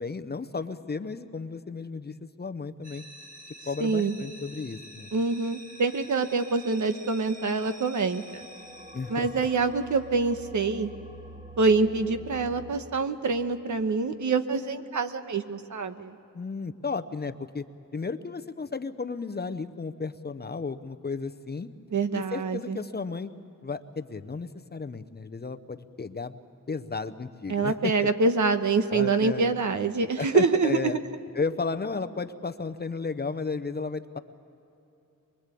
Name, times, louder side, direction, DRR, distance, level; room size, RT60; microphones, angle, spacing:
voice 1, 0.0-3.0 3.7-5.1 8.9-9.5 16.3-17.7 17.9-21.7 22.1-23.3 23.6-26.4 26.7-28.1 28.9-29.5 30.2-31.0 31.3-34.2, left 4 dB, 30° left, 9 dB, 0.7 m, -33 dB
sound 1, 2.8-12.7, right 1 dB, 25° right, 2.0 m, -46 dB
voice 2, 3.8-4.1 5.1-8.4 9.1-10.9 11.6-16.2 21.9-22.8 27.5-31.0, right 4 dB, 65° right, 8 dB, 1.2 m, -26 dB
24.0 x 22.5 x 8.4 m, 2.9 s
wide cardioid pair, 150°, 32 cm